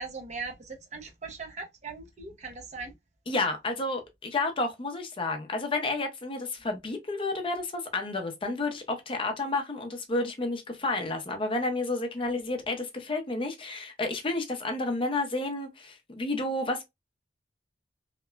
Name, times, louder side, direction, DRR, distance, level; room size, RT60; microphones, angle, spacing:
voice 1, 0.0-2.9, right 4 dB, 40° right, 0.6 m, -39 dB
voice 2, 3.3-16.8, left 2 dB, 30° left, 0.5 m, -31 dB
2.8 x 2.1 x 2.2 m
head